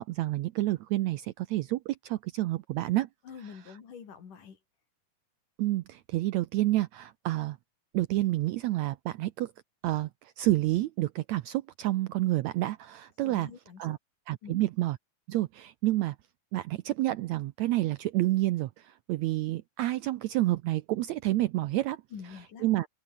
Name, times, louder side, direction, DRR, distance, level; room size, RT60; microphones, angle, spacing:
voice 1, 0.0-3.1 3.4-3.8 5.6-7.6 7.9-9.5 9.8-13.5 13.8-14.0 14.3-15.0 15.3-16.2 16.5-22.0 22.6-22.9, right 16 dB, 75° right, 1.7 m, -29 dB
voice 2, 3.2-4.6 13.2-14.0 14.4-14.6 22.1-22.7, left 7 dB, 70° left, 4.8 m, -46 dB
open air
omnidirectional pair, 3.8 m